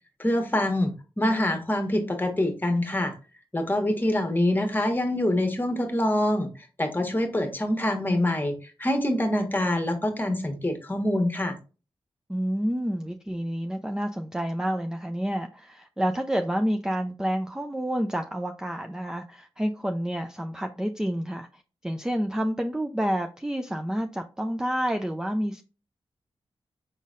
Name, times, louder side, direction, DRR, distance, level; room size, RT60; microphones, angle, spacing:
voice 1, 0.2-3.1 3.5-6.5 6.8-11.6, left 1 dB, 20° left, 1.2 m, -25 dB
voice 2, 12.3-25.6, equal, 5° right, 0.4 m, -29 dB
5.2 x 3.8 x 2.4 m
cardioid pair, 55°, 10 cm